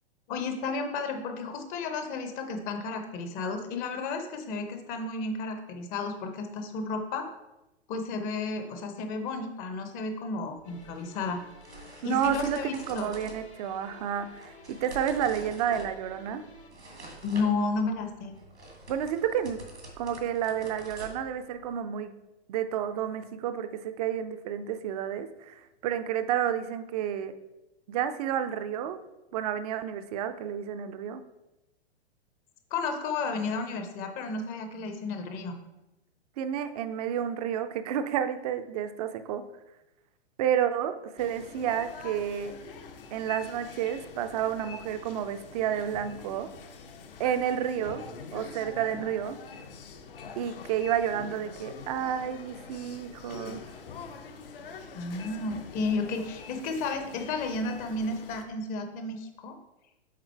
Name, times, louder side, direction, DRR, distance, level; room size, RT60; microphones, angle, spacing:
voice 1, 0.3-7.3 7.9-11.4 12.0-13.1 17.2-18.3 32.7-35.6 47.2-47.3 48.9-49.1 54.9-59.6, left 3 dB, 25° left, 6 dB, 0.7 m, -32 dB
sound 1, 10.6-16.7, left 3 dB, 80° left, 1.5 m, -53 dB
sound 2, 10.6-21.7, right 3 dB, 85° right, 2.0 m, -47 dB
voice 2, 12.0-16.4 18.9-19.6 20.0-22.2 22.5-27.3 27.9-29.0 29.3-31.2 36.4-39.4 40.4-42.5 43.1-46.5 47.2-48.0 48.3-49.4 50.4-53.6, right 9 dB, 35° right, 10 dB, 0.5 m, -30 dB
sound 3, 41.2-58.4, left 5 dB, 55° left, 0.8 m, -45 dB
7.4 x 3.8 x 4.5 m, 0.98 s
figure-of-eight pair, 110°, 32 cm